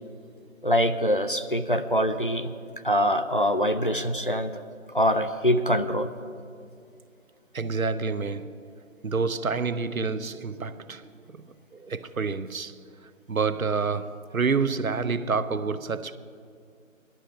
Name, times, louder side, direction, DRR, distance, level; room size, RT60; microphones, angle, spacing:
voice 1, 0.6-2.5 2.8-4.6 4.9-6.1, equal, 40° left, 0.4 m, -24 dB
voice 2, 7.5-8.7 9.0-16.2, right 4 dB, 80° right, 0.7 m, -29 dB
16.0 x 12.0 x 4.9 m
figure-of-eight pair, 155°, 41 cm